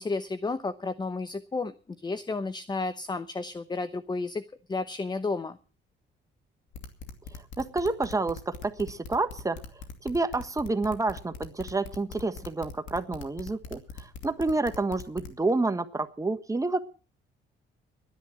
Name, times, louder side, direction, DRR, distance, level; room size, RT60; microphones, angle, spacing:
voice 1, 0.0-4.4 4.7-5.6, left 3 dB, 20° left, 14 dB, 0.8 m, -32 dB
sound 1, 6.7-15.4, left 5 dB, 75° left, 2.5 m, -41 dB
voice 2, 7.6-9.6 10.0-16.8, right 3 dB, 15° right, 9 dB, 1.3 m, -29 dB
12.0 x 10.5 x 7.5 m, 0.39 s
cardioid pair, 90°, 20 cm